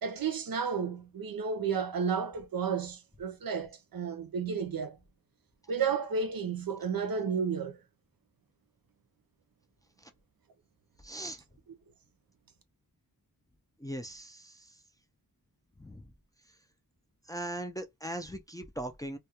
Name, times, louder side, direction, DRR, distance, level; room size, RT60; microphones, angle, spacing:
voice 1, 0.0-5.0 5.7-7.8, right 6 dB, 65° right, 0.6 m, -32 dB
voice 2, 11.0-11.4 13.8-14.8 15.8-16.1 17.3-19.2, right 1 dB, 10° left, 0.4 m, -39 dB
2.2 x 2.2 x 2.8 m
wide cardioid pair, 70°, 37 cm